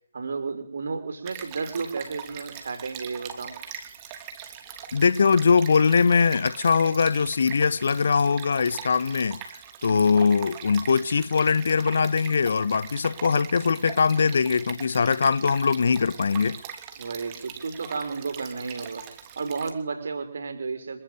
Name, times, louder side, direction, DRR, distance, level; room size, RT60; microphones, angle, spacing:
voice 1, 0.1-3.6 17.0-19.1 19.4-21.0, right 4 dB, 50° right, 5.3 m, -32 dB
Stream, 1.2-19.7, right 8 dB, 20° right, 3.2 m, -42 dB
voice 2, 4.9-9.4 9.8-16.6, left 5 dB, 50° left, 1.2 m, -21 dB
26.5 x 23.5 x 8.0 m
figure-of-eight pair, 145°, 0 cm